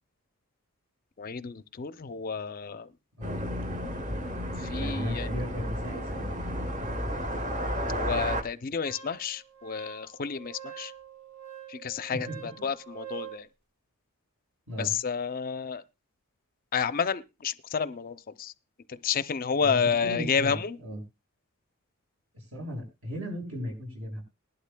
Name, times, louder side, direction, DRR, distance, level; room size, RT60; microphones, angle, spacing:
voice 1, 1.2-2.9 4.6-5.3 7.9-10.9 11.7-12.3 12.6-13.5 14.8-15.8 16.7-18.5 18.9-20.8, left 6 dB, 40° left, 0.5 m, -30 dB
sound 1, 3.2-8.4, equal, 35° right, 1.1 m, -32 dB
voice 2, 4.7-6.5 12.1-12.6 14.7-15.0 19.6-21.0 22.3-24.2, equal, 65° right, 6.0 m, -36 dB
Wind instrument woodwind instrument, 8.8-13.4, right 9 dB, 85° right, 4.5 m, -45 dB
19.5 x 11.5 x 2.2 m
head